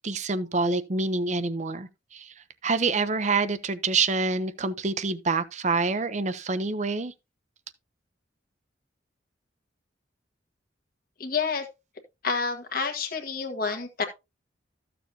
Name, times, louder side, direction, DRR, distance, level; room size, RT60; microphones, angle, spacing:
voice 1, 0.0-2.3 2.6-7.1, right 4 dB, 40° right, 0.8 m, -27 dB
voice 2, 11.2-11.7 12.2-14.0, left 5 dB, 50° left, 1.5 m, -29 dB
14.0 x 6.9 x 2.8 m
head